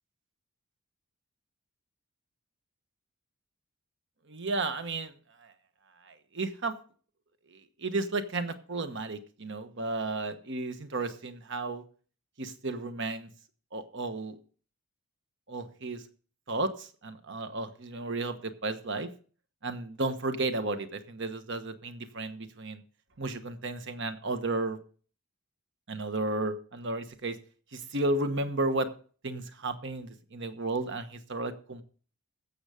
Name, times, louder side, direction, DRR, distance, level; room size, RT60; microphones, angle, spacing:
voice 1, 4.3-5.1 5.4-5.5 6.0-6.7 7.5-11.8 12.4-13.3 13.7-14.4 15.5-16.0 16.5-19.1 19.6-22.8 23.2-24.8 25.9-27.4 27.7-28.9 29.2-31.8, right 2 dB, 55° right, 9 dB, 1.2 m, -33 dB
16.0 x 6.7 x 5.0 m, 0.41 s
head